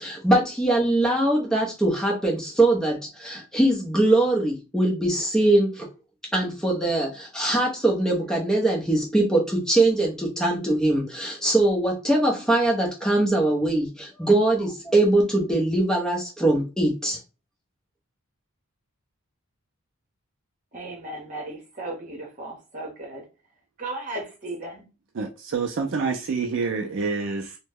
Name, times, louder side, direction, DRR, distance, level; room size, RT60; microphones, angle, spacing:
voice 1, 0.0-5.9 6.3-17.2, right 2 dB, 5° left, 0.7 m, -22 dB
voice 2, 20.7-23.2 23.8-24.8, right 2 dB, 35° right, 1.1 m, -35 dB
voice 3, 25.1-27.6, right 4 dB, 55° right, 0.4 m, -27 dB
3.0 x 2.1 x 3.4 m
head